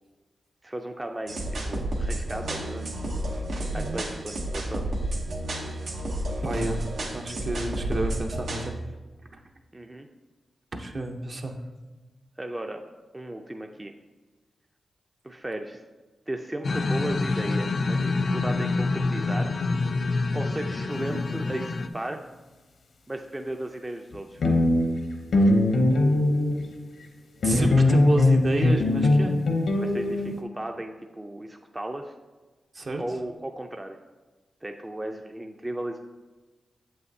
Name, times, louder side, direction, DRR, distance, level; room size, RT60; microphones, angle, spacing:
voice 1, 0.6-2.8 3.7-4.9 9.7-10.1 12.4-12.8 13.1-13.9 15.2-15.8 16.3-19.5 20.3-22.2 23.1-24.4 29.8-32.1 33.0-34.0 34.6-36.0, right 1 dB, 20° right, 4 dB, 0.4 m, -35 dB
sound 1, 1.3-8.7, right 1 dB, 85° right, 0.9 m, -31 dB
voice 2, 6.4-8.7 10.7-11.6 25.4-25.5 27.4-29.4 32.7-33.0, right 2 dB, 50° right, 3 dB, 0.7 m, -30 dB
sound 2, 16.6-21.9, left 3 dB, 60° left, 0.3 m, -27 dB
sound 3, 20.9-21.2 24.1-24.2 24.4-26.8 27.4-30.4, left 2 dB, 80° left, 0.7 m, -21 dB
7.4 x 5.5 x 2.7 m, 1.3 s
cardioid pair, 55°, 0 cm